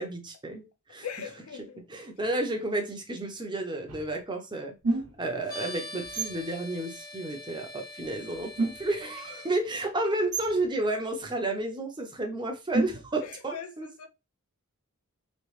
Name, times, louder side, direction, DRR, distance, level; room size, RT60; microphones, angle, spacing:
voice 1, 0.0-1.1 1.9-4.7 5.2-13.9, right 2 dB, 20° right, 0.7 m, -32 dB
voice 2, 1.0-1.8 9.3-9.6 13.2-14.1, left 7 dB, 70° left, 0.5 m, -41 dB
sound 1, 3.9-4.1 4.8-5.4 6.0-6.4 8.0-8.1 8.3-9.1 10.3-10.7 12.7-13.3, right 3 dB, 85° right, 1.0 m, -30 dB
sound 2, 5.5-9.5, left 1 dB, 20° left, 0.9 m, -43 dB
3.2 x 2.9 x 3.2 m
head